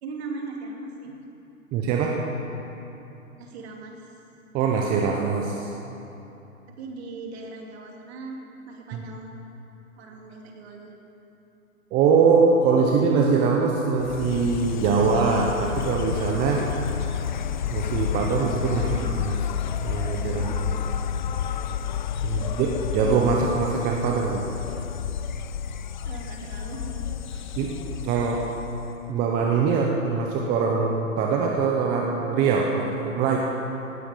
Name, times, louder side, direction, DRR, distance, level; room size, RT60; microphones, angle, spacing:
voice 1, 0.0-1.1 3.4-4.1 6.8-8.4 8.7-9.3 10.0-10.9 18.7-19.2 20.2-20.7 22.3-22.8 26.0-27.6, right 3 dB, 45° right, 1 dB, 2.8 m, -39 dB
voice 2, 1.7-2.1 4.5-5.7 8.9-9.0 11.9-16.7 17.7-19.3 19.8-20.7 22.2-24.5 27.6-27.7 28.0-28.4 29.1-33.4, right 5 dB, 20° right, 0 dB, 1.0 m, -23 dB
Insect, 14.0-29.1, left 8 dB, 35° left, 0.4 m, -30 dB
17.5 x 11.5 x 5.2 m, 3.0 s
hypercardioid pair, 130°, 42 cm